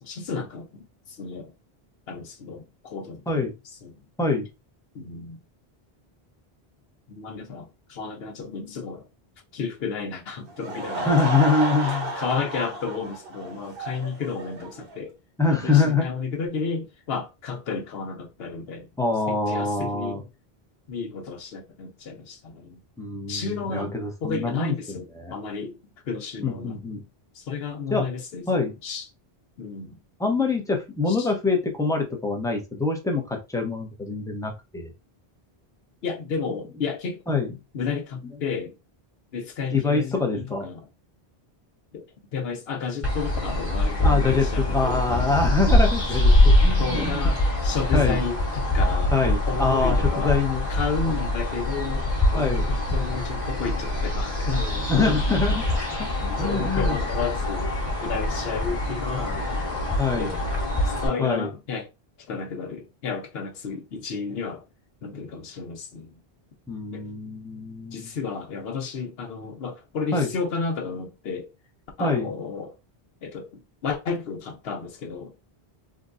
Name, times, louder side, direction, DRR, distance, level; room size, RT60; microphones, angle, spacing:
voice 1, 0.0-1.5 2.1-3.5 3.8-4.0 4.9-5.4 7.1-9.1 9.5-11.1 11.8-15.1 15.5-18.9 19.3-20.2 20.9-22.8 23.3-23.9 24.2-25.8 26.1-26.8 27.3-29.1 29.6-30.0 31.1-31.3 36.0-37.2 37.7-38.8 39.3-40.8 41.9-42.0 42.3-45.4 46.8-49.1 49.4-50.4 50.7-52.0 52.3-55.2 55.7-55.8 56.3-57.7 58.0-60.4 60.8-61.9 62.2-64.6 65.0-66.1 66.9-67.0 67.9-71.5 72.0-72.7 73.2-75.3, left 5 dB, 75° left, 1.0 m, -32 dB
Laughter / Crowd, 10.5-15.0, right 2 dB, 65° right, 1.0 m, -31 dB
voice 2, 11.1-12.1 15.4-16.2 19.0-20.2 23.0-25.3 26.4-27.0 27.9-28.1 28.5-28.7 30.2-34.9 37.3-37.5 38.2-38.3 39.7-40.7 44.0-47.2 47.9-48.2 49.1-50.6 51.1-51.2 52.3-52.7 54.9-55.7 56.0-56.1 56.4-57.0 60.0-60.3 61.2-61.5 66.7-68.1 70.1-70.3 72.0-72.3, left 4 dB, 5° left, 0.6 m, -25 dB
sound 1, 43.0-61.1, left 1 dB, 30° left, 1.2 m, -24 dB
3.7 x 2.2 x 2.5 m
omnidirectional pair, 1.0 m